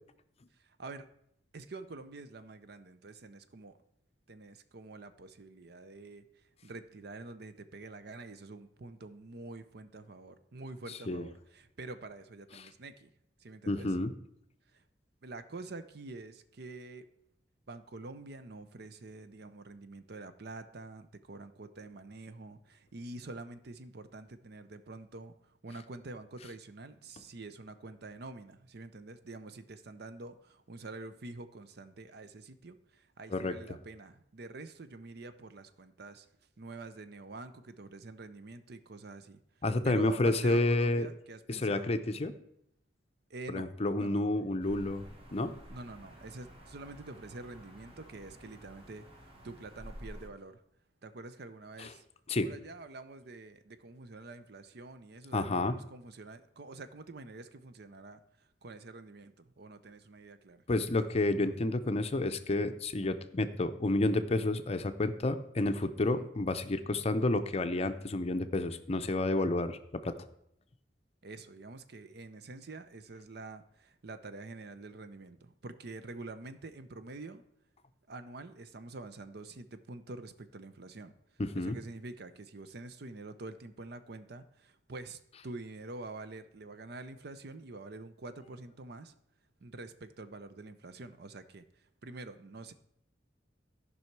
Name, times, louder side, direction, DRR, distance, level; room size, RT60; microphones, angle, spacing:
voice 1, 0.6-1.1 1.5-3.8 4.3-6.3 6.6-13.1 13.4-14.0 14.7-14.8 15.2-17.1 17.7-36.3 36.6-39.4 39.8-41.9 43.3-43.7 44.0-44.2 45.7-50.6 51.0-52.0 52.4-60.6 66.0-66.3 71.2-77.4 78.1-81.1 81.5-89.1 89.6-92.7, right 2 dB, 60° right, 11 dB, 0.7 m, -47 dB
voice 2, 13.7-14.1 33.3-33.5 39.6-41.1 41.5-42.3 43.5-45.6 51.8-51.9 52.3-52.5 55.3-55.7 60.7-70.1 81.4-81.8, left 2 dB, 35° left, 9 dB, 0.6 m, -30 dB
sound 1, 44.6-50.3, equal, 30° right, 1.6 m, -51 dB
13.5 x 5.5 x 4.6 m, 0.74 s
head